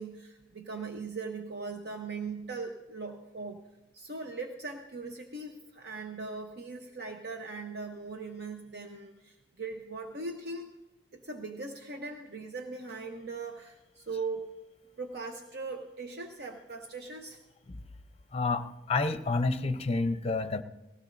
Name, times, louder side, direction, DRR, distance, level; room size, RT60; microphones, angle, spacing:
voice 1, 0.0-3.6 3.9-10.7 11.1-14.5 15.0-17.4, right 3 dB, 60° right, 4 dB, 0.8 m, -40 dB
voice 2, 18.3-20.6, left 3 dB, 35° left, 10 dB, 0.6 m, -29 dB
19.5 x 16.0 x 2.6 m, 1.0 s
head